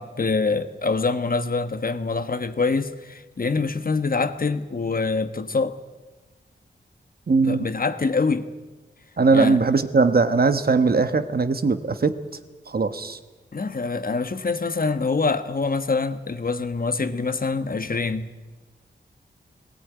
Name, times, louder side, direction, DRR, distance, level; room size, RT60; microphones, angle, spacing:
voice 1, 0.0-5.7 7.4-8.5 9.3-9.6 13.5-18.3, left 4 dB, 50° left, 10 dB, 1.3 m, -25 dB
voice 2, 7.3-7.7 9.2-12.1 12.7-13.2, right 4 dB, 50° right, 10 dB, 1.3 m, -20 dB
18.5 x 18.0 x 9.4 m, 1.2 s
wide cardioid pair, 75°, 19 cm